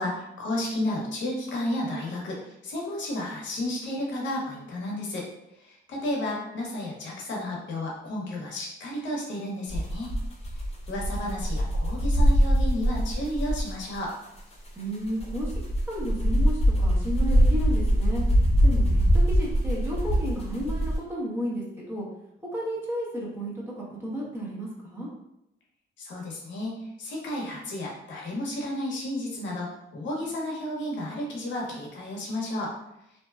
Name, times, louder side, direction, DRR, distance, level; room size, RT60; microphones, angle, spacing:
voice 1, 0.0-5.3 5.5-10.1 10.5-10.6 10.9-14.1 26.0-32.7, left 1 dB, 70° left, -2 dB, 0.7 m, -32 dB
sound 1, 9.7-14.0 14.4-14.5 14.9-21.0, equal, 30° left, 0.7 m, -23 dB
voice 2, 14.8-15.5 15.9-18.2 18.6-22.1 22.5-25.1, equal, 10° right, -5 dB, 0.8 m, -33 dB
2.6 x 2.1 x 2.3 m, 0.83 s
cardioid pair, 90°, 20 cm